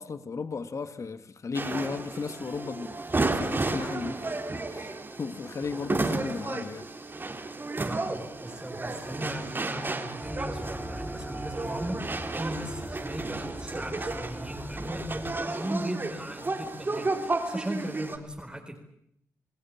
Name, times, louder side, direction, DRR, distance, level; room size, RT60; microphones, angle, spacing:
voice 1, 0.0-2.9 3.3-4.2 4.6-6.9, left 4 dB, 55° left, 11 dB, 1.7 m, -35 dB
sound 1, 1.5-18.2, right 2 dB, 35° right, 3.8 m, -33 dB
voice 2, 7.8-12.0 12.3-18.8, right 1 dB, 15° right, 1 dB, 4.2 m, -37 dB
sound 2, 10.2-15.4, equal, 5° left, 4.0 m, -40 dB
29.0 x 18.5 x 8.6 m, 0.73 s
cardioid pair, 55°, 6 cm